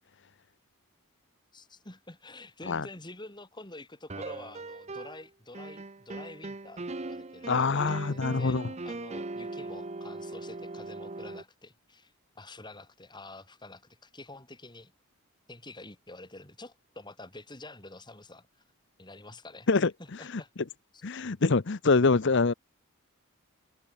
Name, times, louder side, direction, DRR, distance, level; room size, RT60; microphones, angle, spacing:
voice 1, 1.5-14.9 15.5-18.6 19.0-19.7 20.0-20.5 20.9-21.0, left 2 dB, 20° left, 4.8 m, -48 dB
sound 1, 4.1-5.3 5.5-11.4, right 2 dB, 30° right, 0.9 m, -40 dB
voice 2, 7.5-8.7 19.7-19.9 21.0-22.5, left 4 dB, 55° left, 0.8 m, -25 dB
head